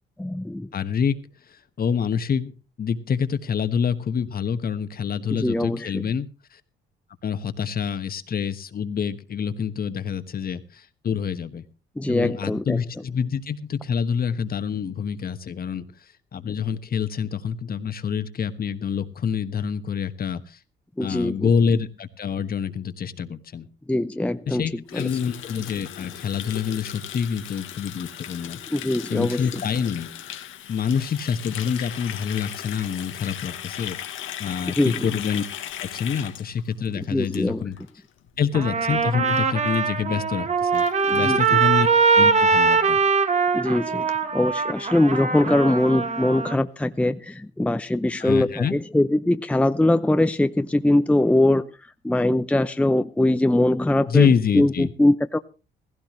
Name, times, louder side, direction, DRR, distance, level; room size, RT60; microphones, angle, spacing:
voice 1, 0.2-0.7 5.3-6.0 12.0-12.8 21.0-21.5 23.9-24.6 24.9-25.0 28.7-29.4 34.8-35.1 37.1-37.6 41.1-41.6 43.5-51.7 52.0-54.3 54.5-55.4, left 1 dB, 5° left, 10 dB, 0.6 m, -22 dB
voice 2, 0.7-1.2 1.5-2.5 2.8-6.6 7.2-11.6 12.1-15.8 16.3-20.6 21.0-23.7 24.5-28.6 29.1-30.1 30.7-34.0 34.4-35.4 35.8-37.8 38.4-41.9 42.1-43.0 48.2-48.7 54.1-54.9, left 7 dB, 50° left, 11 dB, 1.3 m, -26 dB
Water tap faucet, 24.9-37.9 38.2-38.4 38.7-39.1 39.3-39.4 39.7-39.8 40.1-40.2 40.4-41.5, left 11 dB, 80° left, 1.5 m, -37 dB
Trumpet, 38.5-46.6, right 5 dB, 35° right, 1.2 m, -22 dB
16.0 x 16.0 x 3.1 m, 0.31 s
cardioid pair, 90°, 20 cm